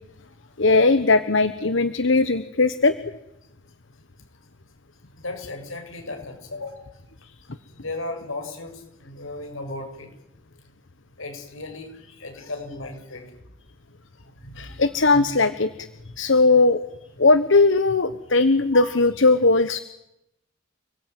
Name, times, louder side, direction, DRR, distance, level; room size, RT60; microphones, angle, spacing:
voice 1, 0.6-3.0 14.6-15.7 16.2-16.8 17.2-19.8, left 3 dB, 65° left, 13 dB, 1.2 m, -18 dB
voice 2, 5.2-6.9 7.7-10.1 11.2-13.3 14.4-15.3 16.2-16.3 18.7-18.9, left 2 dB, 85° left, 5 dB, 7.6 m, -36 dB
30.0 x 21.0 x 9.4 m, 0.85 s
head